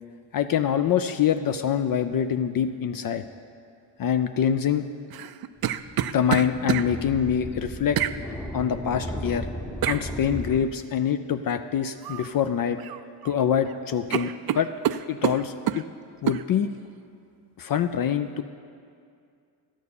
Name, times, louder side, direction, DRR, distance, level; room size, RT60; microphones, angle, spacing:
voice 1, 0.3-3.2 4.0-4.8 6.1-8.0 8.5-9.5 9.9-12.8 13.2-14.7 15.1-15.8 16.2-16.7 17.6-18.4, left 8 dB, 50° left, 9 dB, 0.5 m, -25 dB
sound 1, 5.1-6.9 8.0-8.2 9.8-10.0 12.0-12.3 12.7-13.3 13.6-13.8 14.1-15.8 16.3-16.4, right 11 dB, 55° right, 0.5 m, -27 dB
sound 2, 5.6-10.6, left 1 dB, 5° left, 0.8 m, -35 dB
12.0 x 4.6 x 8.4 m, 2.3 s
cardioid pair, 75°, 44 cm